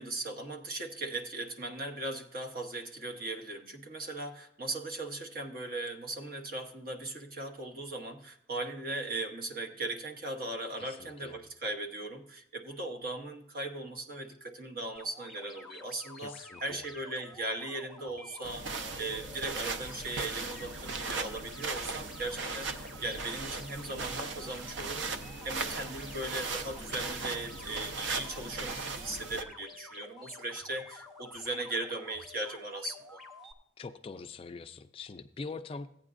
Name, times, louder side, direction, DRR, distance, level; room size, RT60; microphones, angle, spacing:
voice 1, 0.0-25.1 25.4-33.2, right 2 dB, 50° right, 4 dB, 1.1 m, -38 dB
voice 2, 10.8-11.4 16.2-16.8 33.8-35.9, left 4 dB, 30° left, 8 dB, 0.3 m, -43 dB
sound 1, 15.0-33.5, left 2 dB, ahead, 0.8 m, -51 dB
sound 2, 18.4-29.4, right 4 dB, 75° right, 0.7 m, -38 dB
15.0 x 9.0 x 2.5 m, 0.74 s
head